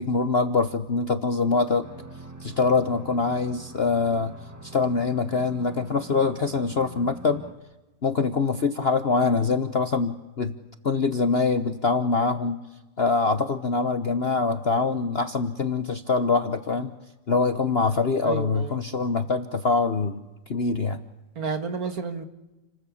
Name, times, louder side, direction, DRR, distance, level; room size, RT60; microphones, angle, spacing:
voice 1, 0.0-1.9 2.4-4.3 4.6-7.4 8.0-10.5 10.8-12.6 13.0-16.9 17.3-21.0, left 4 dB, 40° left, 10 dB, 1.0 m, -24 dB
sound 1, 1.8-7.5, right 2 dB, 10° right, 2.0 m, -44 dB
voice 2, 18.2-18.8 21.4-22.2, right 5 dB, 50° right, 9 dB, 2.2 m, -31 dB
29.5 x 19.5 x 8.5 m, 1.1 s
omnidirectional pair, 2.0 m